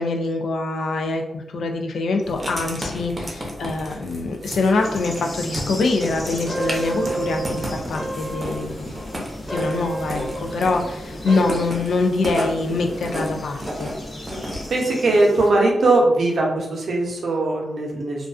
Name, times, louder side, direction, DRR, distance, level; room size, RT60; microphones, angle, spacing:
voice 1, 0.0-8.9 9.5-13.9, left 3 dB, 85° left, 3 dB, 0.3 m, -24 dB
Writing, 2.2-14.7, equal, 30° right, 0.7 m, -33 dB
sound 1, 4.8-15.5, left 2 dB, 55° left, 0.7 m, -37 dB
sound 2, 6.1-11.5, right 2 dB, 5° left, 0.6 m, -31 dB
voice 2, 14.7-18.3, right 2 dB, 75° right, -1 dB, 0.6 m, -20 dB
2.4 x 2.3 x 2.3 m, 0.88 s
cardioid pair, 70°, 0 cm